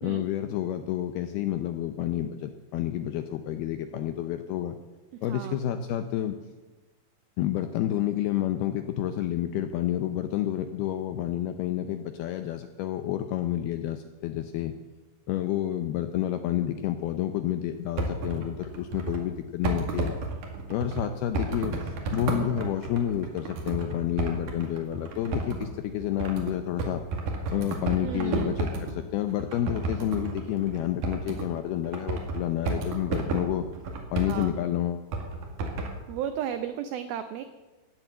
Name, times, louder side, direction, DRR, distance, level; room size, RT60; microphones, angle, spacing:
voice 1, 0.0-4.8 5.2-6.4 7.4-14.7 15.3-20.2 20.7-21.8 22.1-27.0 27.5-33.7 34.1-35.1, left 11 dB, 80° left, 8 dB, 2.3 m, -29 dB
voice 2, 5.2-5.6 28.0-28.6 34.3-34.6 36.1-37.4, right 10 dB, 90° right, 9 dB, 2.1 m, -34 dB
sound 1, 17.7-19.3 19.6-29.0 29.3-31.6 31.8-34.5 35.1-35.9, right 3 dB, 55° right, 3.4 m, -32 dB
16.5 x 11.0 x 7.9 m, 1.2 s
omnidirectional pair, 5.3 m